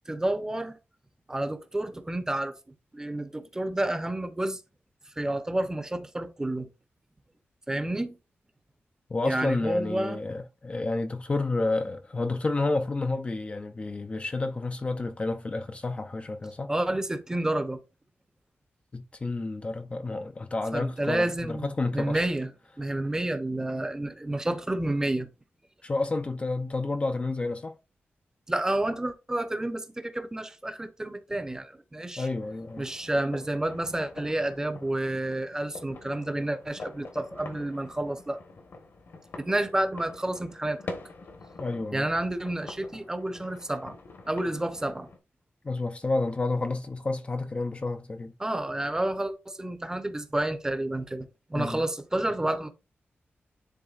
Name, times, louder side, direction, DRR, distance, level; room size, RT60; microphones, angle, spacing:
voice 1, 0.1-0.8 1.3-2.5 2.9-4.6 5.2-6.7 7.7-8.2 9.2-10.2 16.7-17.8 20.7-22.5 22.8-25.3 28.5-32.3 32.8-38.4 39.3-40.8 41.9-43.9 44.3-45.1 48.4-52.7, right 1 dB, 15° right, 0.8 m, -30 dB
voice 2, 9.1-16.7 18.9-22.2 25.8-27.7 32.2-32.9 41.6-42.1 45.6-48.3 51.6-51.8, left 3 dB, 30° left, 0.5 m, -30 dB
sound 1, 32.4-45.2, left 3 dB, 65° left, 1.4 m, -45 dB
11.0 x 3.6 x 2.5 m
wide cardioid pair, 125°, 4 cm